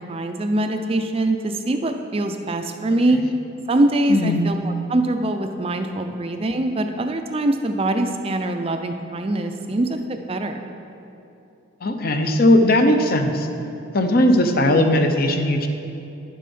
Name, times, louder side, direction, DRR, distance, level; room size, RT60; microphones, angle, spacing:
voice 1, 0.0-3.2 3.7-10.6, right 1 dB, 25° right, 6 dB, 0.4 m, -23 dB
voice 2, 4.1-4.4 11.8-13.5 13.9-15.7, left 1 dB, 45° left, 6 dB, 0.7 m, -18 dB
10.5 x 7.4 x 5.4 m, 2.8 s
head